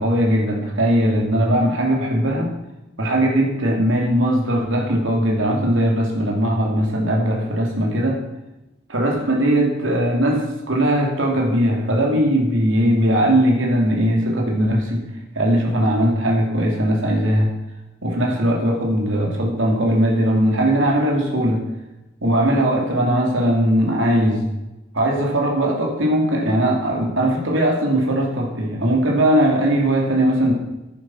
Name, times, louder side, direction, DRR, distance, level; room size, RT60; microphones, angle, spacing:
voice 1, 0.0-2.5 3.0-8.2 8.9-15.0 15.3-17.5 18.0-21.6 22.2-24.4 24.9-30.5, right 1 dB, 80° right, 0 dB, 2.7 m, -19 dB
10.5 x 10.0 x 6.1 m, 0.98 s
head